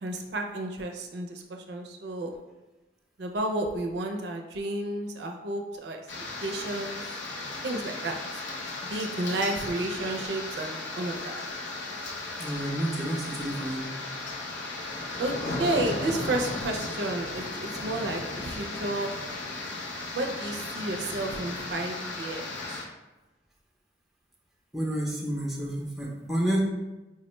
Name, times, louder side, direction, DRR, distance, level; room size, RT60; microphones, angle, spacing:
voice 1, 0.0-2.3 3.2-6.0 6.4-7.2 7.6-8.2 8.8-11.4 14.6-14.7 15.2-19.1 20.1-22.6, right 2 dB, 65° right, 3 dB, 0.4 m, -32 dB
sound 1, 6.1-22.8, left 2 dB, 90° left, 0.7 m, -35 dB
voice 2, 12.4-13.9 24.7-26.6, right 1 dB, ahead, -3 dB, 0.5 m, -30 dB
4.6 x 2.1 x 3.0 m, 1.1 s
head